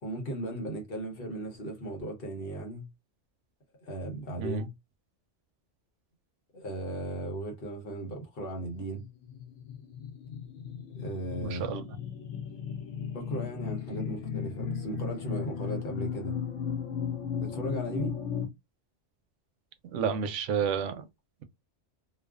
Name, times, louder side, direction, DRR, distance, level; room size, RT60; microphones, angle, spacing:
voice 1, 0.0-2.9 3.8-4.7 6.5-9.0 10.9-11.7 13.1-16.4 17.4-18.2, right 1 dB, 55° left, 1.0 m, -37 dB
sound 1, 8.7-18.5, left 7 dB, 90° left, 0.9 m, -36 dB
voice 2, 11.4-11.9 19.9-21.0, right 6 dB, 85° right, 0.9 m, -30 dB
2.4 x 2.4 x 2.3 m
omnidirectional pair, 1.2 m